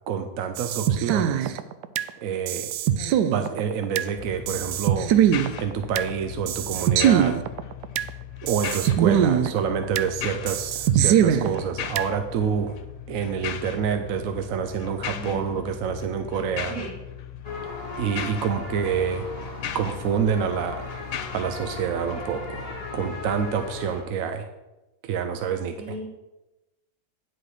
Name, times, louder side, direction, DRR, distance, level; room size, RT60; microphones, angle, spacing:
voice 1, 0.1-1.6 2.2-2.7 3.3-5.1 5.6-7.4 8.4-12.8 13.1-16.8 18.0-19.3 19.7-20.9 21.3-24.4 25.0-25.7, right 7 dB, 65° right, 7 dB, 0.9 m, -27 dB
sound 1, 0.6-2.1 2.5-4.1 4.5-6.1 6.5-8.1 8.5-10.1 10.5-12.1, right 10 dB, 85° right, 1.2 m, -22 dB
sound 2, 4.2-23.9, left 10 dB, 65° left, 0.8 m, -38 dB
voice 2, 15.1-15.6 16.7-17.0 25.8-26.0, right 2 dB, ahead, -7 dB, 3.2 m, -37 dB
sound 3, 17.4-24.0, left 2 dB, 40° left, 1.5 m, -38 dB
9.8 x 6.1 x 4.9 m, 1.0 s
omnidirectional pair, 1.8 m